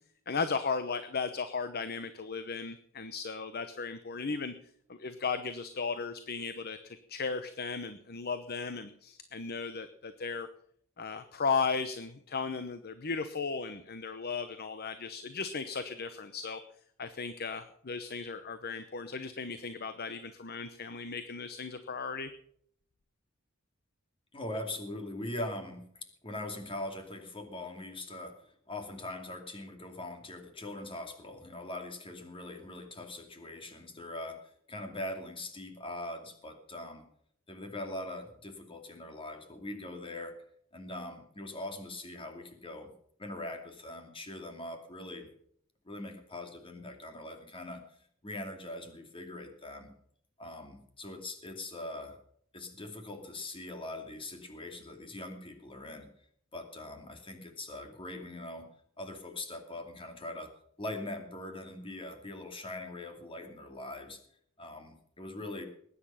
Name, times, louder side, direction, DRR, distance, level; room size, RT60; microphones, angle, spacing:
voice 1, 0.3-4.5 4.9-10.5 11.0-16.6 17.0-22.3, left 5 dB, 50° left, 10 dB, 0.9 m, -36 dB
voice 2, 24.3-37.0 37.5-40.3 40.7-42.9 43.2-45.3 45.8-47.8 48.2-49.9 50.4-52.2 52.5-56.1 56.5-58.7 59.0-60.5 60.8-64.2 64.6-65.6, left 1 dB, 25° left, 5 dB, 2.6 m, -42 dB
19.5 x 9.9 x 5.7 m, 0.66 s
head